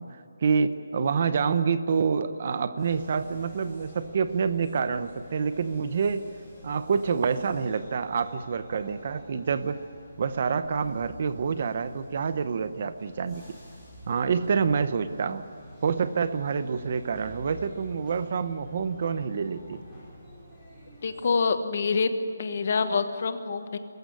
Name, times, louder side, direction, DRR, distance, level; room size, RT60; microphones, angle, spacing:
voice 1, 0.0-6.3 6.6-9.8 10.2-13.4 14.1-15.4 15.8-19.8, right 6 dB, 30° right, 12 dB, 0.7 m, -27 dB
sound 1, 2.8-21.4, equal, 5° right, 6.0 m, -48 dB
voice 2, 21.0-22.1 22.4-23.8, left 5 dB, 35° left, 10 dB, 1.3 m, -26 dB
23.0 x 14.5 x 9.5 m, 2.5 s
hypercardioid pair, 180°, 0 cm